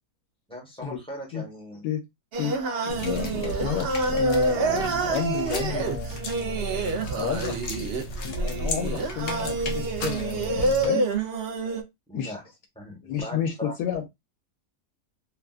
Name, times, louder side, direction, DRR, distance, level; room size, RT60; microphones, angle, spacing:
voice 1, 0.5-1.8 12.1-12.4 12.8-13.7, equal, 5° left, -2 dB, 0.8 m, -39 dB
Singing, 2.3-11.8, right 3 dB, 70° right, 0.5 m, -27 dB
voice 2, 2.8-6.2 7.1-11.0 12.1-12.3 13.0-14.1, left 9 dB, 85° left, 3 dB, 1.3 m, -31 dB
sound 1, 2.9-10.9, equal, 55° left, 0.8 m, -34 dB
3.4 x 2.3 x 2.4 m, 0.20 s
omnidirectional pair, 1.8 m